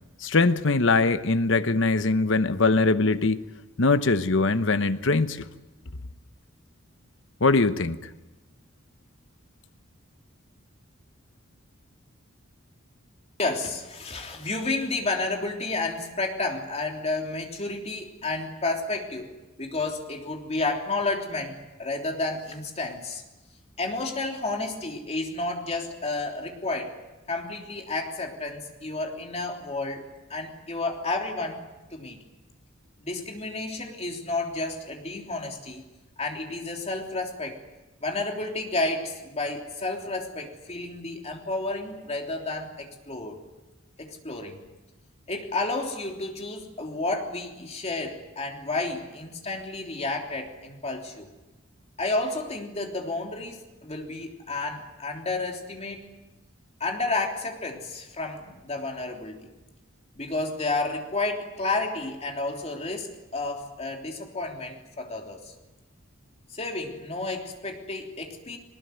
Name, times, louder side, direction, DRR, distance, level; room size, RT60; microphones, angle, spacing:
voice 1, 0.2-3.4 3.8-5.5 7.4-8.0, left 3 dB, 65° left, 1.0 m, -22 dB
voice 2, 13.4-19.3 19.6-23.2 23.8-26.9 27.3-30.0 30.3-31.6 31.9-32.2 33.0-35.8 36.2-37.6 38.0-43.4 44.0-44.6 45.3-51.3 52.0-56.1 56.8-59.5 60.1-65.5 66.5-68.6, left 2 dB, 30° left, 3.3 m, -31 dB
22.0 x 20.0 x 9.3 m
head